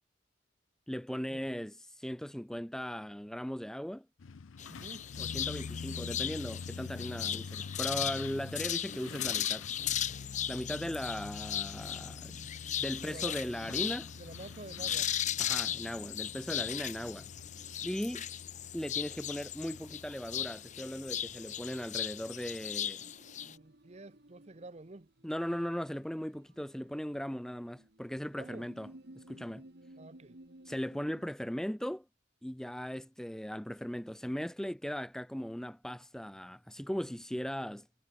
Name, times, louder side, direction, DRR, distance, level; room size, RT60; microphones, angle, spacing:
voice 1, 0.9-4.1 5.2-9.7 10.5-12.4 12.8-14.1 15.4-17.3 17.8-18.2 18.7-23.0 25.2-28.9 29.1-29.6 30.6-32.0 32.4-37.9, equal, 5° left, 0.4 m, -38 dB
Truck, 4.2-22.7, left 4 dB, 80° left, 0.5 m, -47 dB
sound 1, 4.6-23.6, left 10 dB, 35° left, 0.8 m, -37 dB
voice 2, 4.6-5.1 12.9-13.4 14.2-15.1 23.3-25.1 28.4-28.7 30.0-30.4, right 2 dB, 35° right, 0.7 m, -49 dB
sound 2, 12.0-31.3, right 1 dB, 55° right, 1.9 m, -59 dB
head